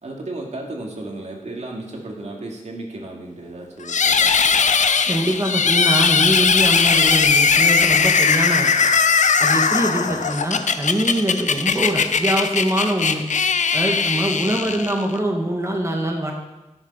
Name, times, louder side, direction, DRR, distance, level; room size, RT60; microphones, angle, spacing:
voice 1, 0.0-4.7 10.1-10.2 14.6-14.8, right 2 dB, 60° right, 0 dB, 2.3 m, -34 dB
sound 1, 3.9-15.2, left 5 dB, 70° left, 0.7 m, -19 dB
voice 2, 5.0-8.9 9.4-13.2 13.7-16.3, right 1 dB, 20° right, 1 dB, 1.9 m, -23 dB
13.0 x 6.7 x 5.7 m, 1.0 s
cardioid pair, 55°, 13 cm